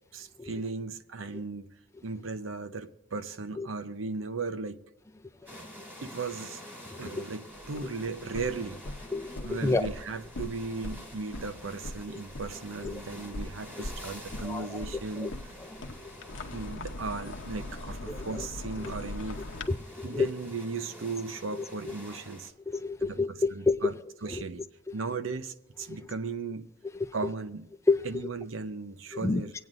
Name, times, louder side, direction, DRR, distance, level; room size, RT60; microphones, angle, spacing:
voice 1, 0.1-1.7 2.0-4.8 6.0-6.6 7.0-8.8 9.4-15.3 16.5-19.4 20.0-22.5 23.0-23.2 23.5-23.9 24.2-24.7 24.9-26.7 27.1-27.7 28.0-29.5, right 4 dB, 80° right, 0.7 m, -36 dB
sound 1, 5.5-22.5, equal, 10° right, 2.7 m, -48 dB
voice 2, 6.9-7.3 7.8-7.9 9.1-9.9 12.1-12.2 12.8-13.0 13.8-13.9 14.4-14.8 15.2-15.3 15.6-15.9 18.1-18.5 18.8-18.9 19.7-20.3 21.5-21.9 22.7-24.6 26.8-27.3 27.9-28.3 29.2-29.4, left 3 dB, 15° left, 0.5 m, -30 dB
sound 2, 7.5-19.7, left 1 dB, 65° left, 0.8 m, -42 dB
25.0 x 9.2 x 2.5 m
head